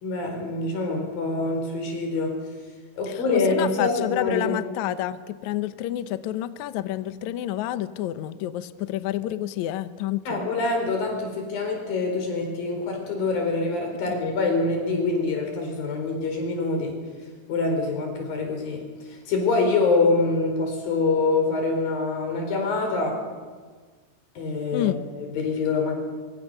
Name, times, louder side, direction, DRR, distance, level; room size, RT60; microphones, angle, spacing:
voice 1, 0.0-2.4 2.9-4.5 10.3-17.0 17.5-23.2 24.4-25.9, left 3 dB, 60° left, 3 dB, 6.1 m, -25 dB
voice 2, 3.0-10.4 14.0-14.1 24.7-25.0, left 12 dB, 80° left, 12 dB, 1.6 m, -29 dB
24.5 x 24.0 x 6.7 m, 1.5 s
omnidirectional pair, 4.6 m